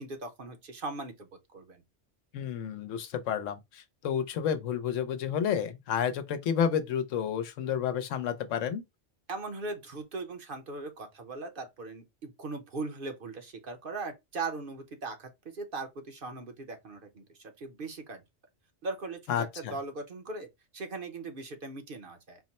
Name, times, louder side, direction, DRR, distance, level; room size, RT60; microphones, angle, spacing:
voice 1, 0.0-1.8 9.3-18.2 18.8-20.5 20.7-22.4, right 3 dB, 50° right, 0.9 m, -39 dB
voice 2, 2.3-8.8 19.3-19.7, left 8 dB, 85° left, 1.0 m, -30 dB
4.4 x 2.1 x 4.1 m
omnidirectional pair, 1.3 m